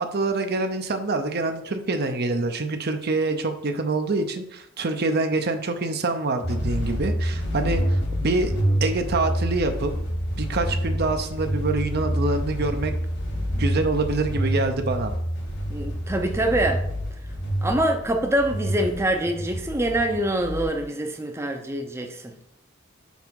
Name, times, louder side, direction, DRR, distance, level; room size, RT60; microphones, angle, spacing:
voice 1, 0.0-8.5 8.8-9.9 10.4-12.9 13.6-15.1, right 3 dB, 55° right, 6 dB, 0.7 m, -25 dB
sound 1, 6.4-20.7, equal, 60° left, 2.0 m, -27 dB
voice 2, 15.7-16.8 17.6-22.3, right 1 dB, 15° right, 3 dB, 0.6 m, -25 dB
5.4 x 5.0 x 4.7 m, 0.75 s
head